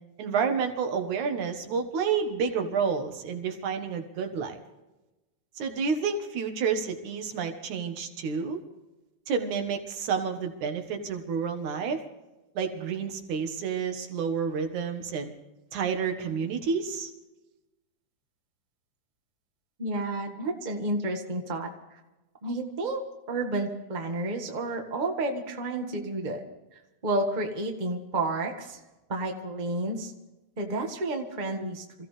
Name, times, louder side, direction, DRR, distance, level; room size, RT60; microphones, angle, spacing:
voice 1, 0.2-4.6 5.6-8.6 9.3-12.0 12.6-15.3 15.7-17.1, right 6 dB, 80° right, 5 dB, 2.9 m, -29 dB
voice 2, 19.8-21.7 22.4-23.0 23.3-26.4 26.7-28.8 29.1-30.1 30.6-32.1, right 2 dB, 25° right, 3 dB, 1.1 m, -31 dB
27.0 x 15.5 x 3.3 m, 1.1 s
omnidirectional pair, 3.4 m